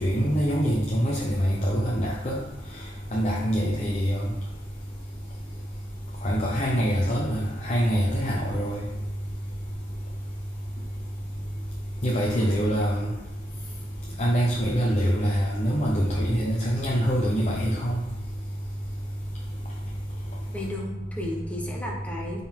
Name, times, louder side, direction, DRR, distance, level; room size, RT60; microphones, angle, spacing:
voice 1, 0.0-2.4 3.1-4.2 6.2-7.4 7.6-8.8 12.0-13.1 14.2-17.9, equal, 35° left, 0.8 m, -24 dB
voice 2, 20.5-22.4, left 1 dB, 5° left, 1.1 m, -34 dB
8.9 x 4.0 x 3.8 m
head